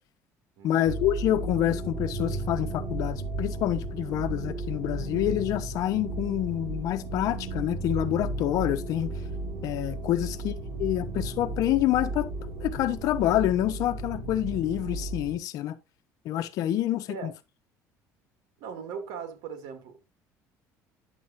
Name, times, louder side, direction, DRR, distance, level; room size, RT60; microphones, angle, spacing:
voice 1, 0.6-9.1 9.6-10.5 10.8-12.3 12.6-15.8 16.2-17.3, left 12 dB, 65° left, 1.0 m, -27 dB
sound 1, 0.8-15.4, right 2 dB, 50° right, 3.2 m, -34 dB
voice 2, 18.6-20.1, right 6 dB, 85° right, 2.3 m, -39 dB
10.0 x 7.2 x 2.6 m
cardioid pair, 135°, 6 cm